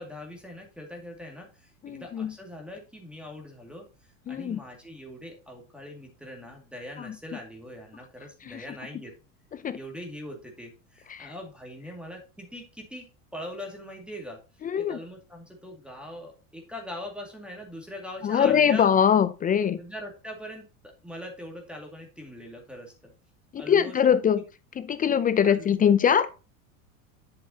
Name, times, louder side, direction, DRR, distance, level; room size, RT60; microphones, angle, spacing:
voice 1, 0.0-3.9 4.3-9.1 9.7-13.1 13.3-14.4 14.8-18.9 19.8-23.1 23.6-24.2 25.4-25.9, left 1 dB, ahead, 1 dB, 2.1 m, -41 dB
voice 2, 1.8-2.3 4.3-4.6 7.0-7.2 8.4-8.6 9.6-9.8 11.1-11.3 14.6-15.0 18.2-19.8 23.5-24.4 24.8-26.3, left 8 dB, 20° left, 14 dB, 0.4 m, -22 dB
8.0 x 6.9 x 2.8 m, 0.32 s
hypercardioid pair, 90°, 42 cm